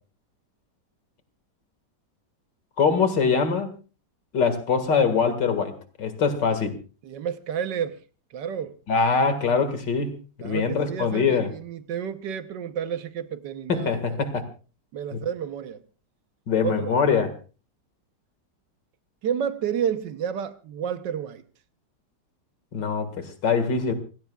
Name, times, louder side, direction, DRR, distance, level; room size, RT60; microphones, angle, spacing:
voice 1, 2.8-3.7 4.3-5.7 6.0-6.8 8.9-10.1 10.4-11.5 13.7-14.4 15.1-15.2 16.5-17.3 22.7-23.9, left 5 dB, 90° left, 2.6 m, -23 dB
voice 2, 7.0-8.0 8.3-8.8 10.4-14.2 14.9-15.8 16.6-16.9 19.2-21.4, right 8 dB, 80° right, 1.6 m, -30 dB
28.5 x 16.5 x 2.3 m
omnidirectional pair, 1.9 m